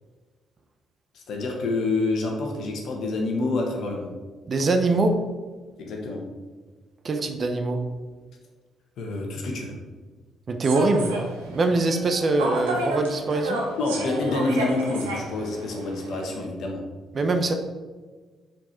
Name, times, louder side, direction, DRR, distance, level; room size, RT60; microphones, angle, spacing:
voice 1, 1.1-4.1 5.8-6.2 9.0-9.8 13.8-16.8, left 2 dB, 65° left, 1 dB, 1.4 m, -27 dB
voice 2, 4.5-5.2 7.0-7.8 10.5-11.1 11.5-13.6 17.1-17.5, right 2 dB, 45° right, 6 dB, 0.8 m, -23 dB
Human voice / Subway metro underground, 10.6-16.3, right 1 dB, 85° right, 0.9 m, -32 dB
6.2 x 4.6 x 4.4 m, 1.4 s
hypercardioid pair, 45°, 0 cm